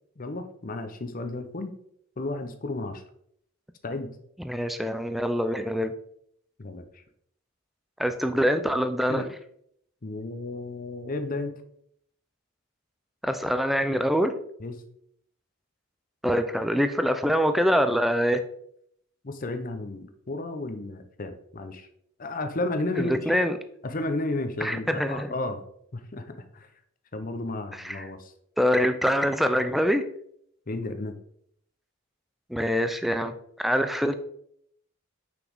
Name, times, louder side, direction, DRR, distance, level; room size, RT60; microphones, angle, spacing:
voice 1, 0.2-1.7 2.2-3.0 3.8-4.1 6.6-6.8 9.1-9.3 10.0-11.5 14.6-14.7 19.2-21.9 22.2-23.1 23.8-25.6 25.9-26.3 26.5-26.7 27.1-28.3 30.7-31.1, left 2 dB, 40° left, 8 dB, 0.7 m, -32 dB
voice 2, 4.4-5.9 8.0-9.2 13.2-14.3 16.2-18.4 22.9-23.6 24.6-25.3 27.7-28.0 28.6-30.0 32.5-34.1, equal, ahead, 9 dB, 0.4 m, -24 dB
6.0 x 5.9 x 3.6 m, 0.69 s
head